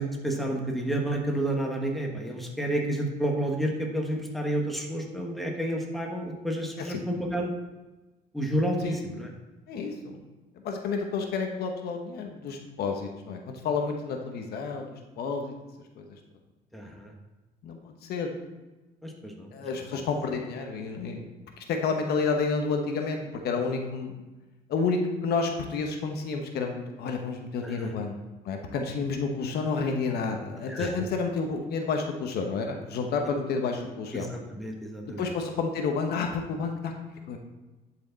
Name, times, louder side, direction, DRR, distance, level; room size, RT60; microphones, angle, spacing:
voice 1, 0.0-7.5 8.3-9.3 16.7-17.1 19.0-19.5 27.6-27.9 30.7-31.1 34.1-35.3, right 1 dB, ahead, 0 dB, 1.4 m, -30 dB
voice 2, 9.7-10.2 10.6-15.5 16.0-16.2 17.6-18.4 19.5-21.3 21.6-24.1 24.7-28.2 28.4-34.3 35.1-36.9 37.3-37.4, left 4 dB, 70° left, 3 dB, 1.1 m, -30 dB
10.5 x 4.8 x 4.0 m, 1.1 s
cardioid pair, 110°, 17 cm